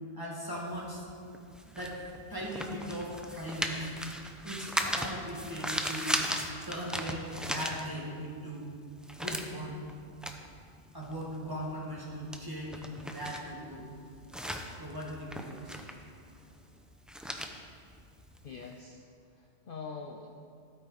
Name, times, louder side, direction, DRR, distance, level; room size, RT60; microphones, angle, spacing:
voice 1, 0.1-1.1 1.6-2.0 2.3-3.9 4.4-6.1 6.7-8.7 9.2-9.8 10.9-13.9 14.8-15.8, equal, 15° right, -5 dB, 2.0 m, -39 dB
sound 1, 0.6-8.3 8.6-18.7, equal, ahead, 0.3 m, -38 dB
voice 2, 18.4-20.3, left 5 dB, 55° left, 2 dB, 0.7 m, -44 dB
13.0 x 8.9 x 4.0 m, 2.3 s
omnidirectional pair, 1.3 m